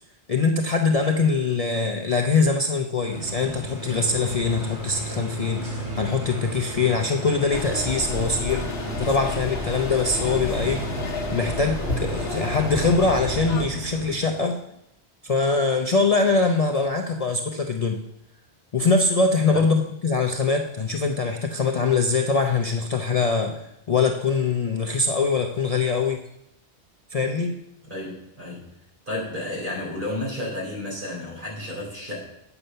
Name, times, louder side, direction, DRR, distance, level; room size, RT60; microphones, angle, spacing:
voice 1, 0.3-8.7 9.0-10.9 11.3-14.6 15.2-18.0 18.7-26.2 27.1-27.5, left 4 dB, 40° left, 3 dB, 0.6 m, -23 dB
sound 1, 3.0-14.3, right 1 dB, 75° right, 3.1 m, -34 dB
sound 2, 7.5-13.7, left 2 dB, 65° left, 1.3 m, -31 dB
voice 2, 27.9-28.7 29.1-32.2, left 1 dB, 50° right, -4 dB, 4.3 m, -32 dB
9.1 x 7.0 x 5.5 m, 0.82 s
omnidirectional pair, 1.1 m